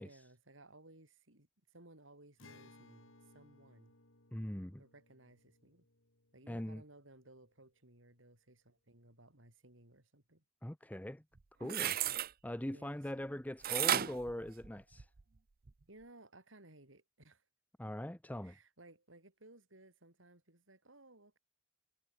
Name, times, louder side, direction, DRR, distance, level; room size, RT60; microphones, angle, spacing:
voice 1, 0.0-3.9 4.8-5.9 6.3-10.4 12.7-13.4 15.9-17.5 18.4-21.4, right 2 dB, 75° right, 5.3 m, -60 dB
Acoustic guitar, 2.4-7.9, left 2 dB, 85° left, 5.2 m, -64 dB
voice 2, 4.3-4.8 6.5-6.8 10.6-11.2 11.6-12.0 12.4-15.1 17.8-18.6, left 1 dB, 10° left, 0.9 m, -41 dB
sound 1, 11.4-12.3 13.6-15.2 15.7-15.8, right 11 dB, 50° right, 0.6 m, -34 dB
head